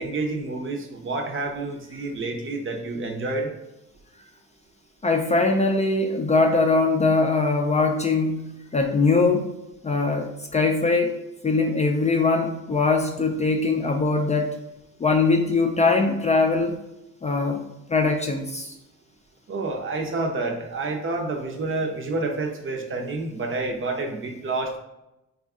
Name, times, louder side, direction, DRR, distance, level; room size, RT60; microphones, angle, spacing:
voice 1, 0.0-3.5 19.5-24.8, right 3 dB, 45° right, 2 dB, 0.7 m, -29 dB
voice 2, 5.0-9.5 9.8-11.2 11.4-14.5 15.0-16.8 17.2-17.6 17.9-18.7, left 3 dB, 25° left, 2 dB, 0.4 m, -21 dB
3.9 x 2.4 x 3.6 m, 0.90 s
cardioid pair, 90°, 30 cm